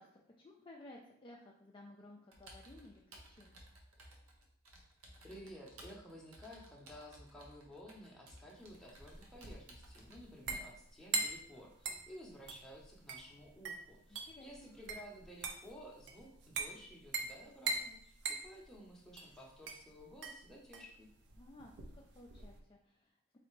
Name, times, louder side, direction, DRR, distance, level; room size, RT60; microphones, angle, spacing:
voice 1, 0.0-3.6 14.1-14.7 21.4-23.4, left 1 dB, 25° left, -2 dB, 0.4 m, -57 dB
Computer keyboard, 2.3-10.2, right 1 dB, 80° right, 0.9 m, -58 dB
voice 2, 5.2-21.1, equal, ahead, -3 dB, 0.8 m, -54 dB
sound 1, 8.6-22.6, right 3 dB, 55° right, 0.5 m, -43 dB
4.0 x 3.2 x 3.2 m, 0.68 s
head